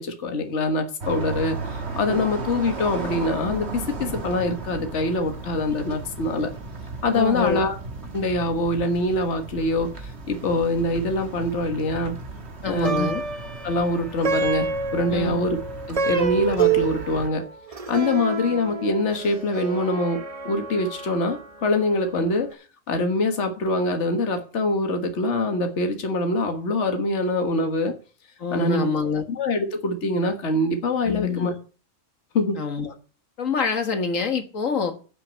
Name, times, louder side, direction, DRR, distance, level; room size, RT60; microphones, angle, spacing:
voice 1, 0.0-6.5 7.0-7.8 8.1-12.1 12.7-13.1 13.6-15.6 15.9-17.4 17.9-22.6 22.9-27.9 28.5-28.9 29.3-31.5 32.3-32.6, left 2 dB, 60° left, 1.8 m, -24 dB
sound 1, 1.0-17.3, right 3 dB, 55° right, 1.8 m, -35 dB
voice 2, 7.1-7.7 12.6-13.2 15.1-15.4 28.4-29.2 31.1-31.5 32.6-32.9 33.4-35.0, left 5 dB, 80° left, 1.9 m, -26 dB
Plucked string instrument, 12.6-22.1, right 5 dB, 30° right, 0.9 m, -28 dB
11.0 x 6.1 x 8.1 m
omnidirectional pair, 1.3 m